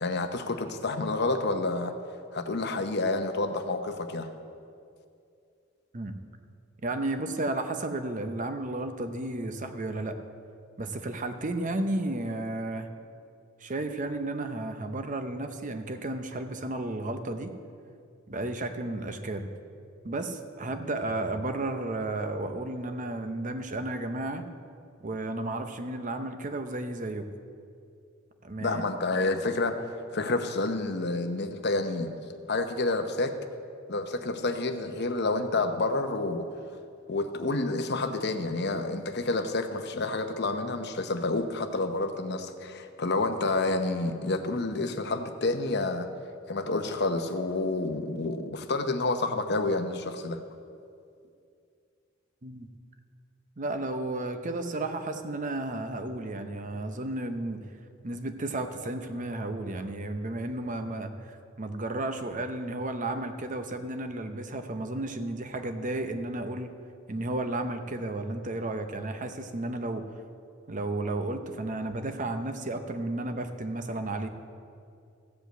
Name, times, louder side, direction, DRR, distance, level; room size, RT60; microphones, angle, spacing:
voice 1, 0.0-1.9 2.3-4.3 28.6-29.8 30.1-32.1 32.5-33.3 33.9-36.5 37.1-46.1 46.5-50.4, left 2 dB, 55° left, 7 dB, 0.8 m, -29 dB
voice 2, 6.8-10.2 10.8-12.9 13.6-17.5 18.3-19.5 20.0-24.5 25.0-27.3 28.4-28.8 52.4-52.7 53.6-57.6 58.0-66.7 67.1-70.1 70.7-74.3, right 2 dB, 40° right, 8 dB, 0.7 m, -33 dB
15.0 x 5.2 x 8.0 m, 2.4 s
head